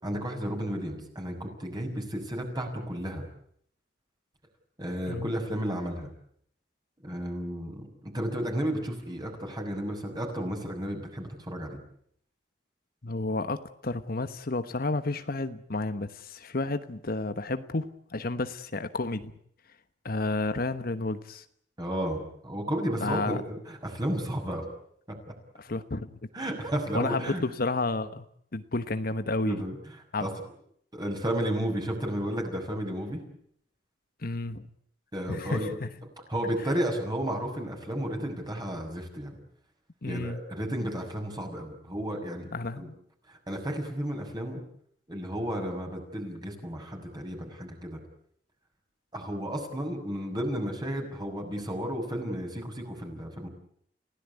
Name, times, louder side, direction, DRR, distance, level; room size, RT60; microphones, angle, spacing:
voice 1, 0.0-3.2 4.8-6.1 7.0-11.8 21.8-24.7 26.3-27.4 29.4-29.8 30.2-30.3 30.9-33.2 35.1-35.7 36.3-39.4 40.0-42.5 42.8-42.9 43.3-44.6 45.1-48.0 49.1-53.5, equal, 25° right, 3 dB, 6.4 m, -33 dB
voice 2, 13.0-19.3 20.0-21.4 23.0-23.4 25.6-26.3 26.9-28.2 28.5-29.6 30.1-30.3 34.2-34.7 35.3-35.9 40.0-40.4 42.5-42.9, left 2 dB, 55° left, 11 dB, 1.2 m, -31 dB
29.0 x 17.0 x 9.8 m, 0.69 s
head